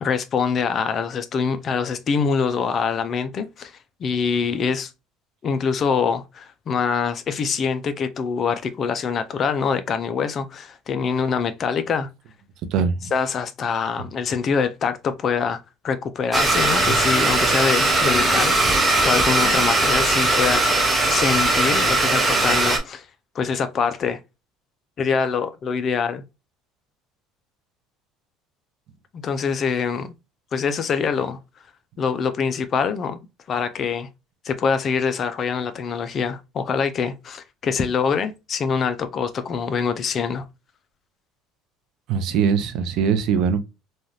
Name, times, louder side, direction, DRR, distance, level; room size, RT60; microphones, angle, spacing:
voice 1, 0.0-4.9 5.4-12.1 13.1-18.6 19.0-23.1 23.3-24.2 25.0-26.2 29.1-30.1 30.5-31.4 32.0-33.2 33.5-34.1 34.4-40.4, left 6 dB, 35° left, 0.4 m, -24 dB
voice 2, 12.7-13.1 42.1-43.6, right 6 dB, 55° right, 0.5 m, -21 dB
Domestic sounds home sounds, 16.3-22.8, right 2 dB, 15° right, 0.7 m, -19 dB
3.1 x 2.3 x 2.5 m
cardioid pair, 145°, 0 cm